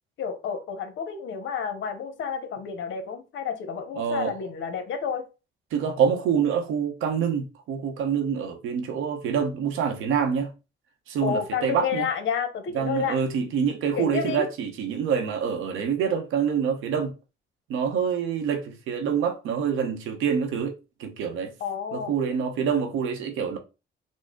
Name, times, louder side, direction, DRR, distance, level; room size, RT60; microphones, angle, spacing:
voice 1, 0.2-5.3 11.2-13.2 14.0-14.5 21.6-22.1, left 7 dB, 75° left, 0.8 m, -30 dB
voice 2, 4.0-4.3 5.7-10.5 11.1-12.1 12.7-17.1 17.7-20.7 21.0-21.5 21.9-23.6, right 7 dB, 90° right, 0.8 m, -26 dB
3.8 x 2.0 x 3.6 m
cardioid pair, 90°, 20 cm